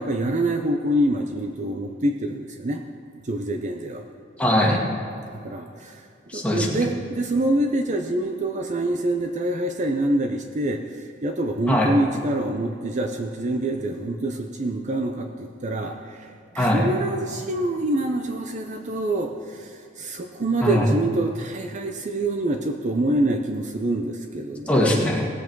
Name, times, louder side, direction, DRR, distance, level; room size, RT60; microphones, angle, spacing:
voice 1, 0.0-2.8 3.2-4.0 5.4-6.0 6.3-24.7, right 1 dB, 40° right, 5 dB, 0.6 m, -26 dB
voice 2, 4.4-4.9 6.3-6.9 11.7-11.9 16.6-16.9 20.6-20.9 24.7-25.3, left 1 dB, 5° left, -3 dB, 1.8 m, -21 dB
17.5 x 8.1 x 4.6 m, 2.4 s
head